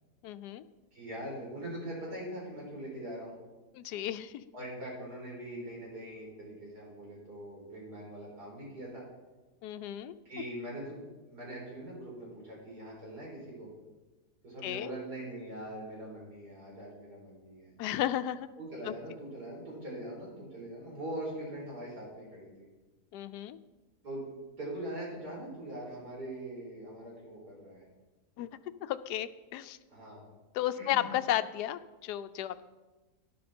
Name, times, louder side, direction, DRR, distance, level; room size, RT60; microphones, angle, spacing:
voice 1, 0.2-0.6 3.7-4.3 9.6-10.1 14.6-14.9 17.8-18.5 18.8-18.9 23.1-23.6 28.4-28.5 28.8-29.8 30.5-32.6, left 12 dB, 80° left, 13 dB, 1.2 m, -33 dB
voice 2, 0.9-3.3 4.5-9.1 10.2-13.7 14.4-17.7 18.6-22.5 24.0-27.8 29.9-30.3 30.8-31.1, right 1 dB, 75° right, -4 dB, 4.9 m, -42 dB
12.0 x 10.5 x 4.3 m, 1.2 s
omnidirectional pair, 1.7 m